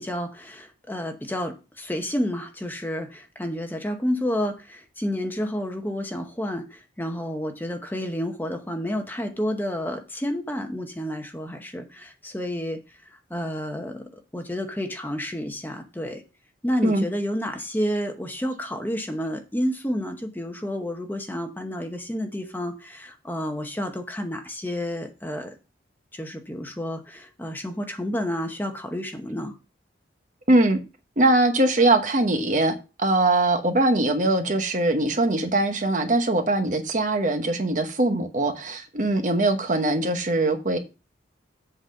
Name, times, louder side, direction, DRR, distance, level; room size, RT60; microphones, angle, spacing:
voice 1, 0.0-13.0 13.3-16.2 16.6-25.5 26.1-29.5, equal, 10° left, 0.9 m, -30 dB
voice 2, 30.5-30.8 31.2-40.8, right 2 dB, 40° right, 1.0 m, -22 dB
7.9 x 4.0 x 6.4 m
head